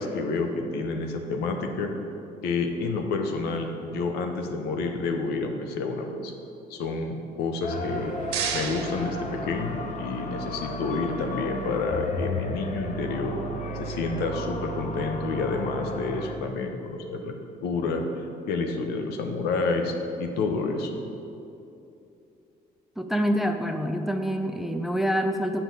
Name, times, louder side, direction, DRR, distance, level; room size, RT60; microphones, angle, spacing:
voice 1, 0.0-1.9 2.4-6.3 6.7-8.1 8.5-13.4 13.7-17.3 17.6-18.0 18.5-21.0, left 3 dB, 85° left, 5 dB, 0.8 m, -29 dB
sound 1, 7.6-16.3, left 1 dB, 50° left, 0.8 m, -34 dB
sound 2, 7.8-10.0, right 7 dB, 90° right, 0.8 m, -34 dB
voice 2, 23.0-25.6, equal, ahead, 6 dB, 0.4 m, -26 dB
8.3 x 6.0 x 4.0 m, 2.7 s
cardioid pair, 85°, 16 cm